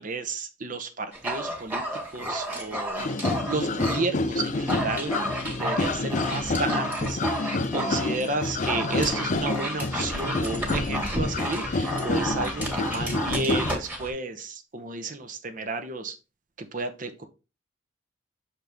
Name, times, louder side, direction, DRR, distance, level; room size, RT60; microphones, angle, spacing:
voice 1, 0.0-1.8 2.1-3.0 3.5-5.1 5.6-16.1 16.6-17.3, right 3 dB, 45° right, 8 dB, 0.8 m, -32 dB
Dog, 1.1-4.1 4.4-14.1, equal, 10° right, 1.5 m, -32 dB
sound 1, 3.0-13.8, left 2 dB, 40° left, 0.5 m, -29 dB
6.4 x 4.3 x 3.5 m, 0.31 s
head